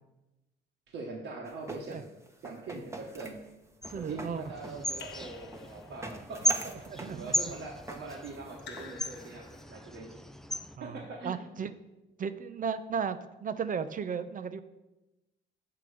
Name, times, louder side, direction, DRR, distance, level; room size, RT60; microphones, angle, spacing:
voice 1, 0.9-2.0 2.4-3.4 3.9-10.3 10.8-11.4, right 3 dB, 75° right, -3 dB, 1.3 m, -42 dB
sound 1, 1.4-9.6, right 1 dB, 15° right, 0.9 m, -46 dB
sound 2, 3.8-10.8, equal, ahead, 0.4 m, -36 dB
voice 2, 3.9-4.5 6.9-7.3 10.8-11.7 12.2-14.6, right 6 dB, 45° right, 12 dB, 0.6 m, -35 dB
Raindrop / Drip, 5.0-6.2 8.6-9.9, left 7 dB, 65° left, 0.7 m, -50 dB
7.8 x 5.7 x 4.9 m, 1.0 s
cardioid pair, 90°, 20 cm